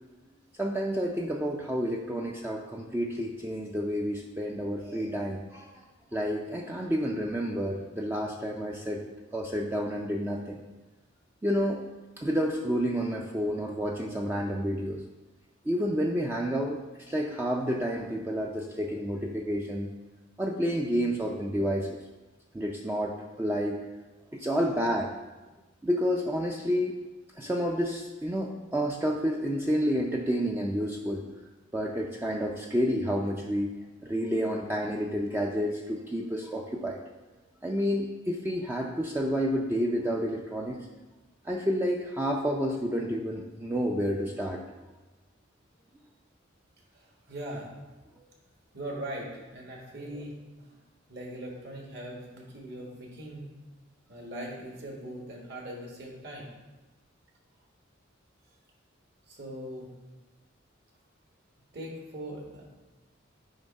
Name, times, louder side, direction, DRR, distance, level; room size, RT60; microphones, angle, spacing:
voice 1, 0.6-5.8 6.1-9.0 9.3-10.6 11.4-11.8 12.2-15.0 15.7-19.9 20.4-22.0 22.5-23.8 24.3-25.1 25.8-26.9 27.4-31.2 31.7-33.7 34.0-37.0 37.6-40.9 41.4-44.6, equal, 10° right, 0 dB, 0.4 m, -30 dB
voice 2, 47.3-47.7 48.7-50.8 51.1-53.5 54.1-56.5 59.3-59.9 61.7-62.6, right 1 dB, 55° right, -1 dB, 1.6 m, -40 dB
8.9 x 3.0 x 5.3 m, 1.2 s
head